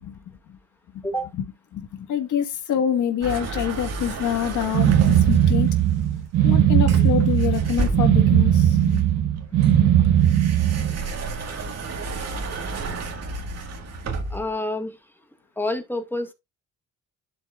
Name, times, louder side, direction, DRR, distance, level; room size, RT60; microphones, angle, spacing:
voice 1, 0.0-0.6 0.9-1.1 1.7-5.7 6.4-9.1 9.5-10.1, left 9 dB, 80° left, 1.7 m, -26 dB
sound 1, 3.2-5.8 6.9-8.4 8.9-14.5, right 3 dB, 55° right, 1.9 m, -32 dB
sound 2, 4.7-11.0, right 10 dB, 80° right, 1.5 m, -18 dB
voice 2, 14.3-15.0 15.6-16.3, left 1 dB, 5° left, 1.7 m, -28 dB
11.5 x 4.2 x 2.5 m
cardioid pair, 90°, 30 cm